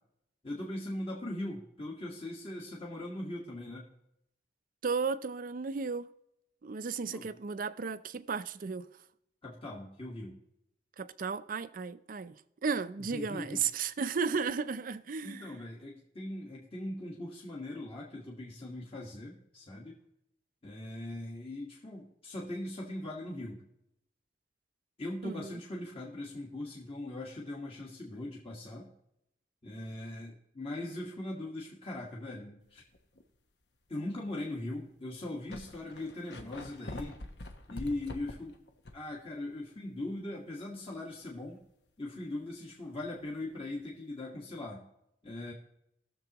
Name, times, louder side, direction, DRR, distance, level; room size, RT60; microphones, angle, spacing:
voice 1, 0.4-3.9 7.1-7.3 9.4-10.4 13.1-13.6 15.2-19.9 20.6-23.6 25.0-28.9 29.6-32.8 33.9-37.2 37.7-38.6 38.9-41.6 42.0-44.8 45.2-45.5, left 1 dB, 35° left, 1.5 m, -40 dB
voice 2, 4.8-6.1 6.6-8.9 11.0-15.5 25.2-25.6, right 5 dB, 50° right, 0.5 m, -34 dB
sound 1, 32.9-33.2 33.9-34.0 34.9-35.0 35.2-39.1 39.5-39.6 43.1-43.3, left 1 dB, 75° left, 1.0 m, -45 dB
19.5 x 6.9 x 2.9 m
head